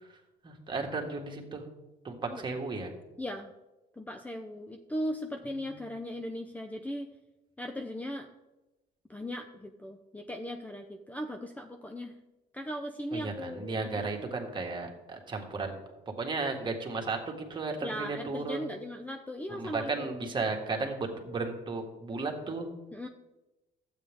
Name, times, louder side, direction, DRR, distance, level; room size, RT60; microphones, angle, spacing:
voice 1, 0.4-1.6 2.0-2.9 5.5-5.7 13.1-15.8 16.2-18.7 19.5-22.7, right 3 dB, 30° right, 2 dB, 1.9 m, -34 dB
voice 2, 3.2-3.5 3.9-7.1 7.6-8.3 9.1-12.1 12.5-14.1 17.8-20.1 22.9-23.1, equal, 10° left, 4 dB, 0.6 m, -38 dB
12.0 x 8.6 x 3.6 m, 1.0 s
cardioid pair, 110°, 17 cm